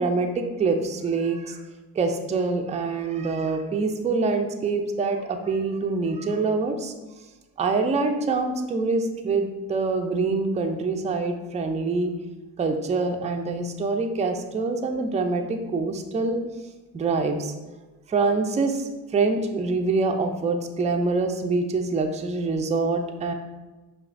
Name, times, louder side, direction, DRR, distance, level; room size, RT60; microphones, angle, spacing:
voice 1, 0.0-1.6 2.0-6.9 7.6-12.1 12.6-16.4 16.9-17.5 18.1-23.3, right 3 dB, 15° right, 5 dB, 0.4 m, -25 dB
5.4 x 2.3 x 2.5 m, 1.1 s
hypercardioid pair, 50°, 46 cm